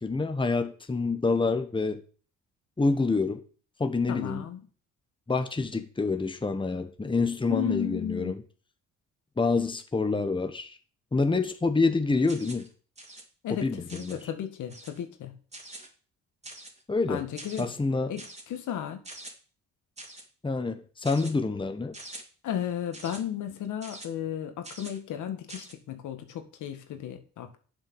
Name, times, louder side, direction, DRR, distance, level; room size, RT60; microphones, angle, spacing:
voice 1, 0.0-2.0 2.8-3.4 3.8-4.5 5.3-8.4 9.4-10.8 11.1-12.7 13.5-14.2 16.9-17.3 17.6-18.1 20.4-22.0, left 3 dB, 15° left, 1.3 m, -27 dB
voice 2, 4.1-4.6 7.5-8.3 13.4-15.3 17.1-17.7 18.1-19.0 22.4-27.6, left 10 dB, 80° left, 1.9 m, -34 dB
sound 1, 12.3-12.7 13.0-13.2 13.9-14.2 14.7-15.0 15.5-15.9 16.4-16.8 17.4-17.6 18.2-18.4 19.0-19.3 20.0-20.3 21.0-21.3 21.9-22.2 22.9-23.2 23.8-24.1 24.6-25.0 25.5-25.7, right 2 dB, 20° right, 2.9 m, -44 dB
8.9 x 7.6 x 7.2 m
cardioid pair, 90°, 30 cm